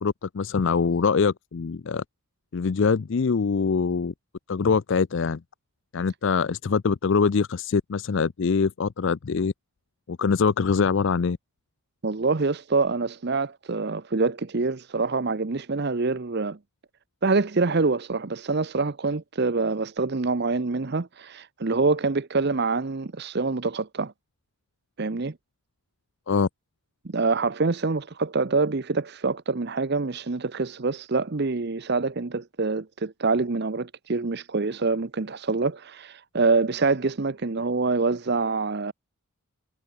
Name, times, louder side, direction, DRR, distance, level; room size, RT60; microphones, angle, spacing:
voice 1, 0.0-2.0 2.5-4.1 4.5-5.4 5.9-9.5 10.1-11.4 26.3-26.5, left 5 dB, 55° left, 0.4 m, -23 dB
voice 2, 12.0-16.6 17.2-24.1 25.0-25.3 27.0-38.9, right 3 dB, 45° right, 0.7 m, -25 dB
head